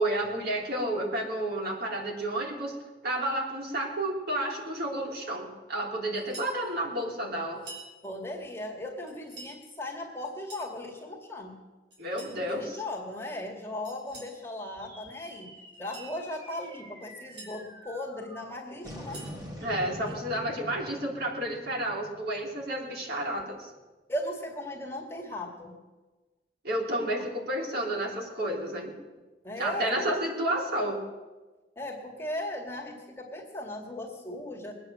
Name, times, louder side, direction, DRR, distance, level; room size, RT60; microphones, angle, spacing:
voice 1, 0.0-2.7 3.0-7.6 12.0-12.8 19.6-23.7 26.6-28.9 29.6-31.0, right 1 dB, 60° right, 0 dB, 3.3 m, -31 dB
sound 1, 6.1-6.6 7.5-7.9 9.1-9.6 10.2-10.7 11.9-12.4 13.8-14.4 15.7-16.1 17.0-17.5 18.8-19.4, right 2 dB, 80° right, 4.6 m, -47 dB
voice 2, 8.0-11.6 12.4-15.5 15.8-19.2 20.1-20.5 24.1-25.8 29.4-30.2 31.8-34.7, left 1 dB, 15° left, 0 dB, 2.0 m, -37 dB
sound 2, 14.8-23.4, equal, 20° right, 2.7 m, -46 dB
21.0 x 8.9 x 7.6 m, 1.2 s
head